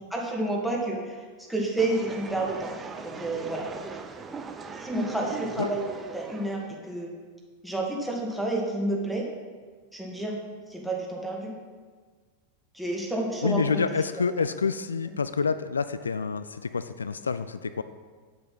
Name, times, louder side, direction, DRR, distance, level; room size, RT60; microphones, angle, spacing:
voice 1, 0.1-1.2 1.5-2.7 3.0-3.7 4.8-5.9 6.1-7.1 7.6-9.2 9.9-10.4 10.7-11.5 12.7-13.8, right 2 dB, ahead, -2 dB, 2.0 m, -29 dB
sound 1, 1.8-6.7, right 4 dB, 20° right, 0.8 m, -40 dB
voice 2, 13.4-17.8, left 5 dB, 75° left, 12 dB, 0.3 m, -28 dB
9.1 x 7.9 x 5.5 m, 1.5 s
figure-of-eight pair, 90°, 0 cm